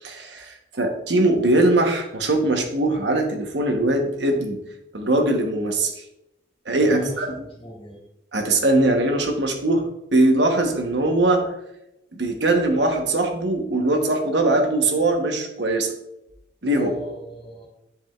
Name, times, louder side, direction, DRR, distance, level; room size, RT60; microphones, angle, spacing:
voice 1, 0.0-4.6 4.9-5.9 6.7-7.3 8.3-11.4 12.1-15.9 16.6-16.9, right 2 dB, 80° right, 4 dB, 1.1 m, -21 dB
voice 2, 6.8-8.0 16.7-17.7, equal, 35° left, -5 dB, 2.5 m, -37 dB
10.5 x 4.9 x 2.4 m, 0.86 s
head